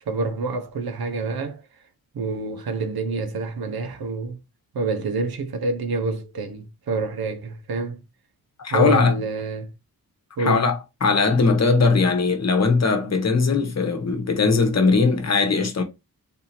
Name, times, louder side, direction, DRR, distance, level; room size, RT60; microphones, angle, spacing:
voice 1, 0.1-1.6 2.1-4.4 4.7-8.0 8.7-9.7 10.4-10.7, right 3 dB, 75° right, 0.9 m, -27 dB
voice 2, 8.6-9.1 10.4-15.8, left 4 dB, 45° left, 1.0 m, -20 dB
3.6 x 2.8 x 4.2 m
wide cardioid pair, 110°, 37 cm